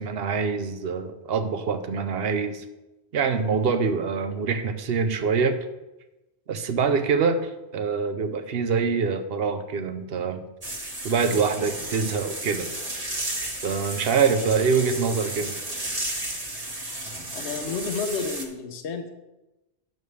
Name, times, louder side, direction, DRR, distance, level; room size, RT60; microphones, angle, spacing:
voice 1, 0.0-2.6 3.1-5.6 6.5-10.4 11.0-12.7 13.6-15.5, right 5 dB, 65° right, 9 dB, 0.9 m, -25 dB
sound 1, 10.6-18.5, right 1 dB, 35° right, 1.3 m, -33 dB
voice 2, 17.3-19.1, left 5 dB, 80° left, 6 dB, 1.1 m, -31 dB
10.5 x 6.9 x 3.3 m, 1.0 s
omnidirectional pair, 1.2 m